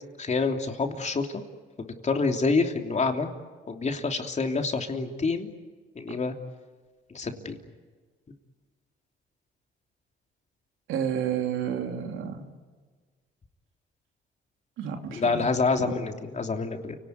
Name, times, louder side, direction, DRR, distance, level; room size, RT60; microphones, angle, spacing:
voice 1, 0.2-1.4 1.8-3.3 3.7-5.5 5.9-6.3 7.1-7.6 15.1-17.0, left 4 dB, 35° left, 4 dB, 3.2 m, -27 dB
voice 2, 10.9-12.5 14.8-15.5 15.8-16.0, right 8 dB, 90° right, 4 dB, 3.0 m, -30 dB
29.5 x 18.5 x 9.6 m, 1.4 s
cardioid pair, 90°, 20 cm